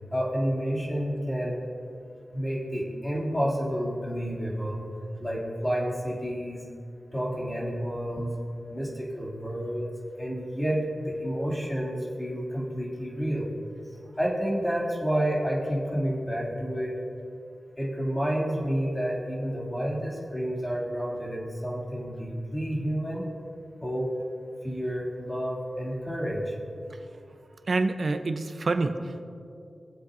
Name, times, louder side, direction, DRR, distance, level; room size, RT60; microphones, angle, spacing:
voice 1, 0.1-1.6 2.3-4.8 5.2-6.6 7.1-8.3 8.7-9.9 10.2-13.5 14.2-16.9 17.8-23.3 23.8-24.1 24.6-26.5, equal, 10° left, -5 dB, 2.8 m, -30 dB
voice 2, 26.8-27.3 27.7-29.2, right 3 dB, 60° right, 8 dB, 0.8 m, -29 dB
19.5 x 7.7 x 2.7 m, 2.5 s
wide cardioid pair, 75°, 0 cm